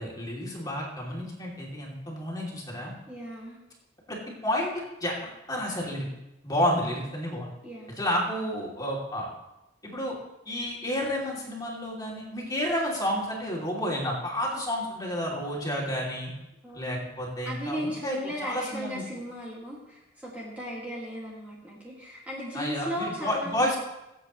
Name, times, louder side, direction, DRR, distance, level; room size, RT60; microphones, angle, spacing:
voice 1, 0.0-2.9 4.1-5.2 5.5-6.1 6.4-7.5 8.0-9.3 9.8-10.2 10.5-16.3 16.7-19.0 22.5-23.8, equal, 20° left, -3 dB, 2.8 m, -30 dB
voice 2, 3.1-3.6 7.6-8.0 16.6-17.0 17.5-23.7, equal, 10° right, -5 dB, 2.0 m, -36 dB
24.0 x 8.0 x 3.1 m, 0.94 s
head